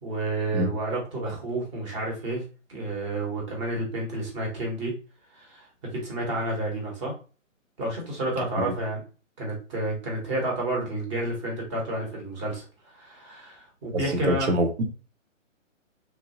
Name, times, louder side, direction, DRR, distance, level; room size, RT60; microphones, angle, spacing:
voice 1, 0.0-2.4 2.7-4.9 5.3-7.1 7.8-9.0 9.4-12.6 12.9-14.5, right 2 dB, 25° right, 0.8 m, -30 dB
voice 2, 13.9-14.8, right 1 dB, 60° right, 0.8 m, -25 dB
3.1 x 2.1 x 2.6 m
hypercardioid pair, 145°, 39 cm